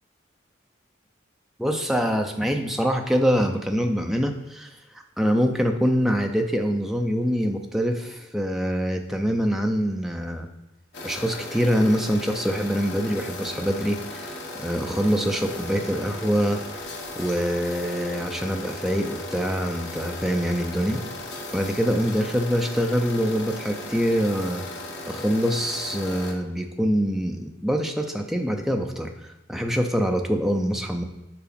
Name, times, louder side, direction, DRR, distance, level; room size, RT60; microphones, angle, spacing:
voice 1, 1.6-4.8 5.2-10.5 11.0-16.6 17.2-21.0 21.5-24.6 25.1-31.0, equal, ahead, 3 dB, 0.5 m, -24 dB
sound 1, 10.9-26.3, left 2 dB, 60° left, 0.9 m, -36 dB
4.8 x 4.8 x 5.1 m, 1.0 s
head